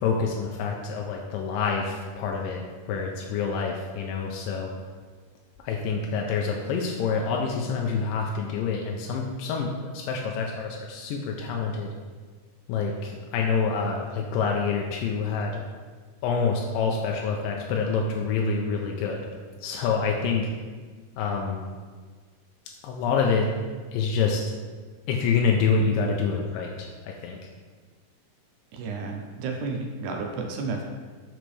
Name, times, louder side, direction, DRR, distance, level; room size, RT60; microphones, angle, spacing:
voice 1, 0.0-4.7 5.6-11.9 12.7-15.6 16.2-19.3 19.6-20.5 21.2-21.6 22.8-23.5 23.9-24.5 25.1-27.5, left 5 dB, 90° left, 0 dB, 2.2 m, -27 dB
voice 2, 28.7-30.8, right 4 dB, 75° right, 2 dB, 1.9 m, -32 dB
7.7 x 5.1 x 3.3 m, 1.5 s
omnidirectional pair, 3.8 m